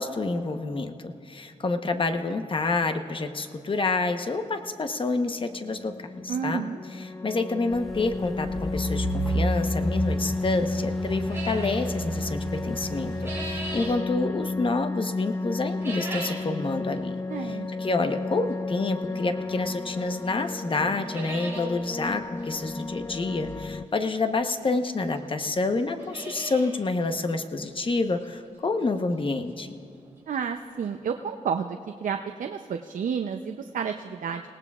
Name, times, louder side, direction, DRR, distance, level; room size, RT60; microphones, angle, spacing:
voice 1, 0.0-6.6 7.0-17.1 17.4-29.8, left 3 dB, 40° left, 7 dB, 1.0 m, -28 dB
sound 1, 5.4-23.9, left 3 dB, 20° left, 0.4 m, -33 dB
voice 2, 6.3-6.8 17.3-17.7 30.3-34.4, right 7 dB, 80° right, 5 dB, 0.6 m, -31 dB
sound 2, 7.7-14.0, right 1 dB, ahead, 1.3 m, -32 dB
sound 3, 11.3-11.9 12.8-14.0 15.7-16.5 16.9-17.0 17.8-17.9 19.6-19.7 20.1-20.2 20.5-20.6 20.9-21.7 22.0-22.1 22.4-22.5 24.0-24.1 24.9-25.0 25.2-25.3 25.8-26.8 27.1-27.2 27.7-27.8 28.2-28.3 30.1-30.2 30.3-30.4 30.9-31.0, right 2 dB, 20° right, 4.6 m, -38 dB
26.5 x 18.0 x 2.4 m, 2.7 s
wide cardioid pair, 90°, 13 cm